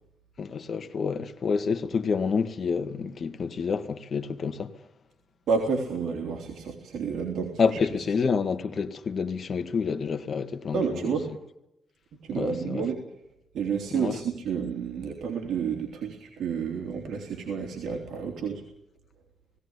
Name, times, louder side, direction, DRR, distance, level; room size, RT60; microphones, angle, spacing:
voice 1, 0.4-4.7 7.6-11.1 12.3-12.8 13.9-14.2, left 5 dB, 45° left, 1.7 m, -28 dB
voice 2, 5.5-7.8 10.7-11.3 12.2-13.1 13.5-18.6, right 6 dB, 80° right, 3.2 m, -30 dB
19.0 x 17.0 x 9.7 m
cardioid pair, 135°, 0 cm